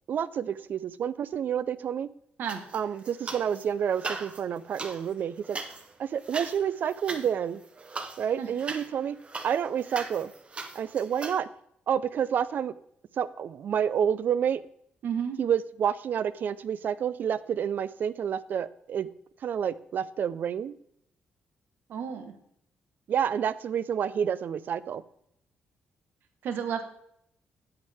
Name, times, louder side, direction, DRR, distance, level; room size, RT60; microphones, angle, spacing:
voice 1, 0.1-2.1 2.7-5.6 6.0-7.6 8.2-9.2 9.4-10.3 10.8-11.5 11.9-12.7 13.2-14.6 15.4-19.1 19.4-20.7 23.1-25.0, right 8 dB, 60° right, 16 dB, 0.4 m, -29 dB
sound 1, 2.5-3.6 3.9-11.4, right 3 dB, 30° right, 0.9 m, -39 dB
voice 2, 15.0-15.4 21.9-22.3 26.4-26.8, right 7 dB, 75° right, 7 dB, 1.2 m, -31 dB
8.5 x 8.0 x 3.5 m, 0.72 s
cardioid pair, 105°, 4 cm